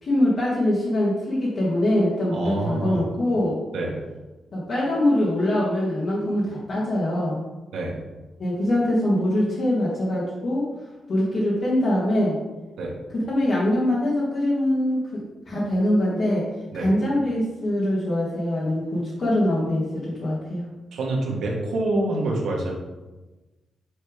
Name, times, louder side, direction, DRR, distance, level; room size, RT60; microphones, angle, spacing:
voice 1, 0.0-3.6 4.5-7.3 8.4-10.6 11.1-12.3 13.1-16.4 16.7-20.6, left 1 dB, 45° left, -6 dB, 1.5 m, -23 dB
voice 2, 2.3-3.1 3.7-4.0 7.7-7.9 12.8-12.9 16.7-16.9 20.9-22.8, right 2 dB, 90° right, -2 dB, 1.4 m, -26 dB
6.5 x 3.3 x 4.9 m, 1.1 s
wide cardioid pair, 160°, 0 cm